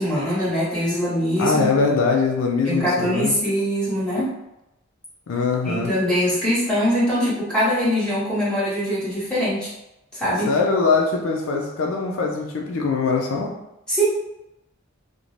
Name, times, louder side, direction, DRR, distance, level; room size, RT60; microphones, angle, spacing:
voice 1, 0.0-1.7 2.6-4.3 5.6-9.7 10.1-10.5 13.9-14.0, equal, 5° left, -10 dB, 1.1 m, -22 dB
voice 2, 1.4-3.3 5.3-5.9 10.5-13.5, left 4 dB, 75° left, 0 dB, 0.4 m, -22 dB
2.5 x 2.1 x 3.1 m, 0.91 s
head